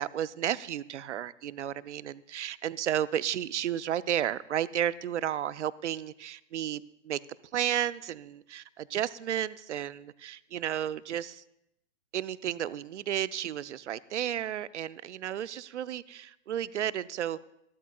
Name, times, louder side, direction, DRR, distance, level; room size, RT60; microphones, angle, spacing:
voice 1, 0.0-7.2 7.5-11.4 12.1-17.4, right 10 dB, 70° right, 18 dB, 0.6 m, -32 dB
25.5 x 12.5 x 2.3 m, 0.79 s
figure-of-eight pair, 110°, 36 cm